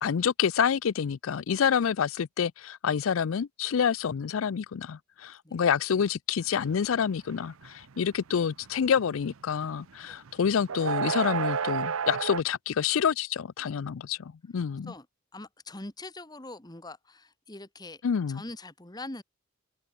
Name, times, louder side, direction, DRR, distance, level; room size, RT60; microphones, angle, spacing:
voice 1, 0.0-14.9 18.0-18.4, left 7 dB, 75° left, 0.4 m, -28 dB
sound 1, 6.7-7.0 7.3-9.7 10.1-12.4, right 6 dB, 80° right, 0.7 m, -31 dB
voice 2, 15.3-18.0 18.3-19.2, left 2 dB, 20° left, 1.5 m, -43 dB
open air
head